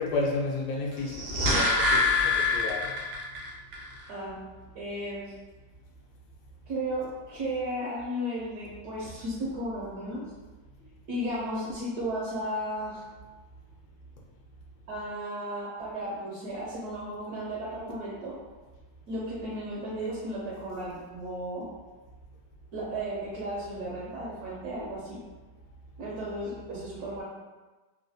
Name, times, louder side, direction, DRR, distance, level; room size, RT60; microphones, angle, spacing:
voice 1, 0.0-2.9, left 3 dB, 75° left, -1 dB, 1.0 m, -32 dB
sound 1, 1.0-3.4 3.7-3.8, left 3 dB, 85° right, 1.3 m, -25 dB
voice 2, 4.1-4.4 4.7-5.3 6.7-10.2 11.1-13.0 14.9-18.4 19.1-21.7 22.7-25.2 26.0-27.2, right 1 dB, 70° right, -5 dB, 1.0 m, -34 dB
3.2 x 2.1 x 2.6 m, 1.2 s
omnidirectional pair, 2.0 m